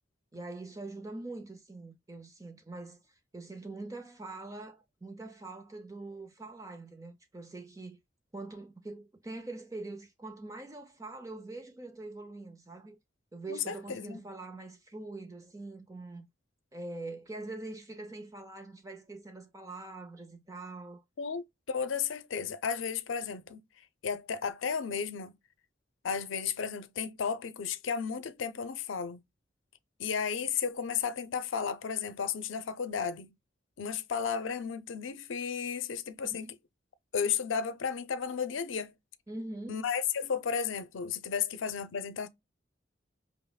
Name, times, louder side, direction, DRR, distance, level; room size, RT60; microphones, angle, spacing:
voice 1, 0.3-8.0 8.3-13.0 13.3-16.3 16.7-21.0 36.2-36.5 39.3-39.8, right 2 dB, 15° right, 0.5 m, -43 dB
voice 2, 13.5-14.2 21.2-23.6 24.0-25.3 26.0-29.2 30.0-33.3 33.8-36.6 37.1-38.9 39.7-42.3, left 6 dB, 85° left, 0.5 m, -33 dB
5.3 x 2.1 x 2.3 m
head